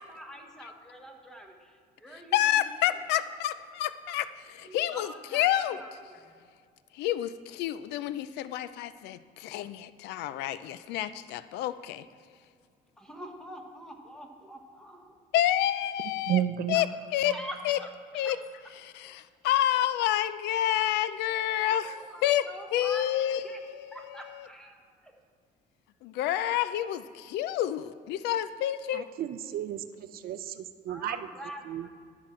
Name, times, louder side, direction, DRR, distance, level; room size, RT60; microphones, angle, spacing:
voice 1, 0.0-2.7 4.6-6.2 13.0-15.1 16.7-16.8 17.2-17.9 18.1-18.3 21.8-23.2 23.4-23.6 23.9-25.1 30.7-31.9, equal, 5° left, 3 dB, 1.2 m, -45 dB
voice 2, 2.3-5.8 7.0-12.0 15.3-16.4 16.7-16.9 17.1-17.4 17.6-17.8 18.1-18.4 18.8-24.5 26.0-29.1, left 12 dB, 85° left, 14 dB, 0.4 m, -29 dB
voice 3, 16.3-16.8 28.9-31.3 31.6-31.9, right 11 dB, 60° right, 11 dB, 0.5 m, -32 dB
12.5 x 6.1 x 4.3 m, 2.2 s
cardioid pair, 110°, 17 cm